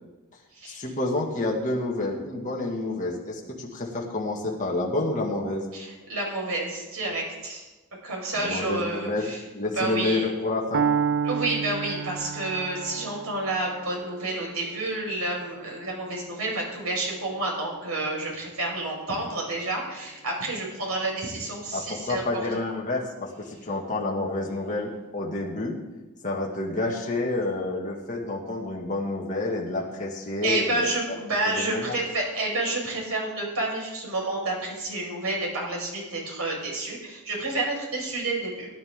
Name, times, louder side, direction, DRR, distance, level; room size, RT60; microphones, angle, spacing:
voice 1, 0.6-5.6 8.4-10.8 21.7-25.8 26.2-30.9 31.4-32.0, left 2 dB, 35° left, -3 dB, 2.0 m, -29 dB
voice 2, 5.7-7.6 8.0-10.3 11.2-22.2 30.4-38.7, right 2 dB, 85° right, -1 dB, 5.4 m, -29 dB
Piano, 10.7-18.7, right 6 dB, 60° right, 0.4 m, -32 dB
18.0 x 11.0 x 3.8 m, 1.1 s
head